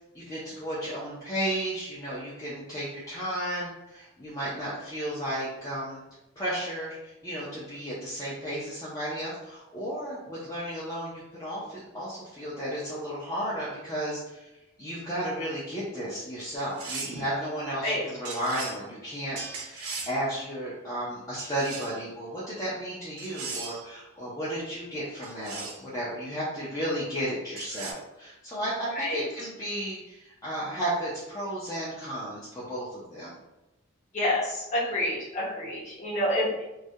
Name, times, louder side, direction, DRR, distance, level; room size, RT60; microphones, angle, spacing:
voice 1, 0.1-6.0 6.4-14.5 14.8-33.3, right 1 dB, 15° left, -9 dB, 0.4 m, -33 dB
sound 1, 16.5-17.3 18.2-18.8 19.3-20.2 21.4-22.0 23.2-23.9 25.2-25.8 27.6-27.9, right 4 dB, 75° right, 0.4 m, -38 dB
voice 2, 34.1-36.6, left 1 dB, 30° left, -7 dB, 0.8 m, -28 dB
2.3 x 2.1 x 2.7 m, 0.99 s
head